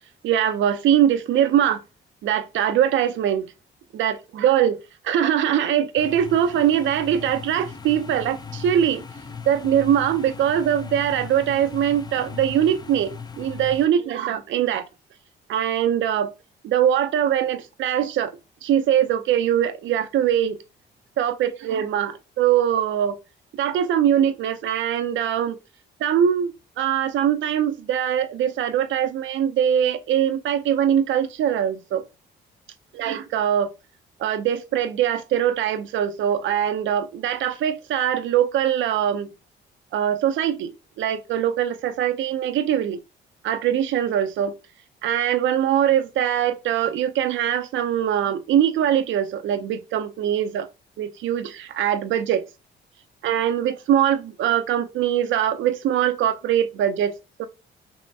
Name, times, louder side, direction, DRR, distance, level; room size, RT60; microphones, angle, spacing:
voice 1, 0.2-1.8 2.2-3.5 3.9-4.8 5.0-9.0 9.5-14.9 15.5-16.3 16.6-18.3 18.6-20.6 21.2-23.2 23.6-25.6 26.0-32.0 32.9-33.7 34.2-39.3 39.9-40.7 41.0-43.0 43.4-44.5 45.0-50.7 51.0-52.4 53.2-57.1 57.4-57.5, right 10 dB, 75° right, 0.5 m, -22 dB
sound 1, 6.0-13.9, left 5 dB, 20° left, 0.4 m, -38 dB
5.4 x 2.1 x 2.6 m
cardioid pair, 90°, 20 cm